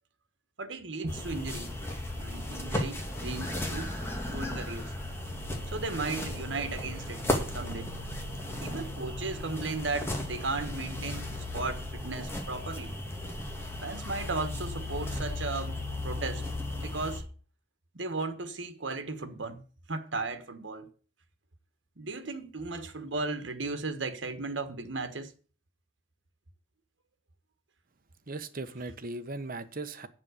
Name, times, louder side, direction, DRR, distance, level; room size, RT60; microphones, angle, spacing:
voice 1, 0.6-1.7 2.2-3.9 4.3-4.9 5.7-7.2 7.5-7.9 8.6-12.9 13.8-17.2 17.9-19.6 19.9-20.9 22.0-25.3, right 3 dB, 80° right, 1.4 m, -36 dB
sound 1, 1.1-17.2, left 1 dB, 15° left, 2.2 m, -35 dB
voice 2, 28.3-30.1, right 2 dB, 50° right, 1.0 m, -38 dB
7.5 x 7.4 x 8.2 m
head